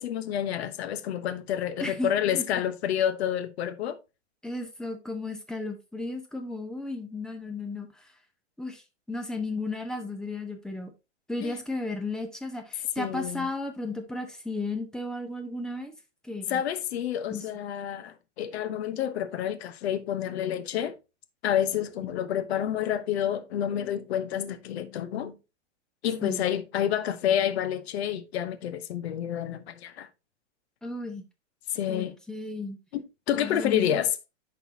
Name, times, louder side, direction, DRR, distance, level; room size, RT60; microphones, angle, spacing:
voice 1, 0.0-4.0 11.4-11.6 13.0-13.5 16.5-21.0 21.4-25.4 26.0-30.1 31.7-32.2 32.9-34.1, left 10 dB, 60° left, 1.0 m, -29 dB
voice 2, 1.8-2.4 4.4-8.1 8.6-8.8 9.1-10.9 11.3-15.9 16.2-16.6 17.3-17.5 26.2-26.4 30.8-31.2 31.9-32.8 33.3-34.0, left 2 dB, ahead, 0.6 m, -34 dB
10.5 x 3.9 x 2.8 m
hypercardioid pair, 140°, 36 cm